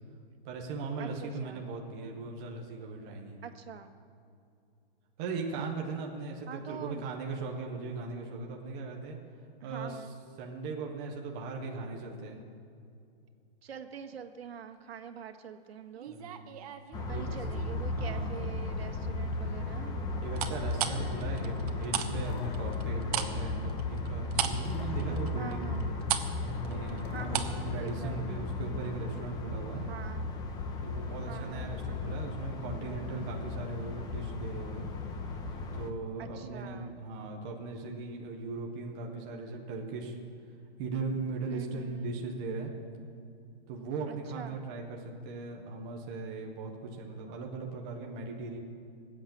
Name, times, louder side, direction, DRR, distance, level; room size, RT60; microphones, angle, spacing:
voice 1, 0.4-3.5 5.2-9.2 9.6-10.0 10.4-12.4 16.1-16.5 17.1-17.2 17.9-18.3 20.2-25.7 26.5-29.8 30.8-34.9 35.6-40.2 40.8-42.7 43.7-48.6, right 3 dB, 5° right, 0 dB, 0.3 m, -38 dB
voice 2, 1.0-1.6 3.4-3.9 6.5-7.0 9.6-10.2 13.6-16.1 17.1-20.0 25.1-25.9 27.1-28.5 29.9-30.3 31.3-31.7 36.2-37.0 41.5-42.2 44.1-44.7 47.3-47.4, right 7 dB, 75° right, 7 dB, 1.6 m, -45 dB
sound 1, 16.0-17.7 18.1-18.6 20.3-22.1 22.4-27.6 27.9-28.0, right 11 dB, 35° right, 1.1 m, -35 dB
sound 2, 16.9-35.9, left 2 dB, 10° left, 0.8 m, -35 dB
sound 3, 22.3-24.1 24.7-26.5 27.0-28.8, left 4 dB, 50° left, 1.3 m, -47 dB
19.5 x 7.9 x 8.6 m, 2.5 s
hypercardioid pair, 155°, 31 cm